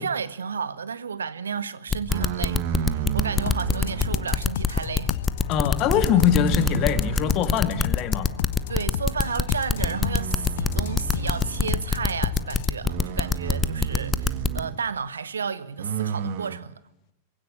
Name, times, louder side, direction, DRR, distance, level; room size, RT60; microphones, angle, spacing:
voice 1, 0.0-5.2 8.7-16.8, right 6 dB, 70° right, 0.9 m, -32 dB
sound 1, 1.9-14.6, left 5 dB, 15° left, 0.8 m, -23 dB
sound 2, 2.1-4.4 5.5-7.9 8.4-8.7 9.7-11.9 12.8-14.8 15.8-16.6, right 10 dB, 50° right, 1.6 m, -32 dB
sound 3, 3.3-12.7, left 12 dB, 55° left, 0.8 m, -33 dB
voice 2, 5.5-8.3, left 9 dB, 40° left, 1.9 m, -23 dB
22.5 x 16.5 x 8.6 m
figure-of-eight pair, 90°, 0 cm